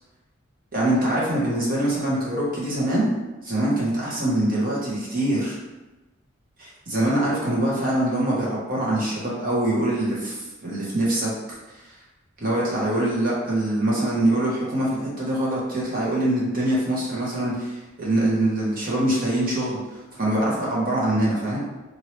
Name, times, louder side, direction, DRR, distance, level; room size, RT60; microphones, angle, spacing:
voice 1, 0.7-3.1 3.4-5.6 6.6-11.6 12.4-19.8 20.2-21.6, right 1 dB, 45° right, -6 dB, 1.0 m, -24 dB
2.9 x 2.7 x 3.1 m, 1.1 s
head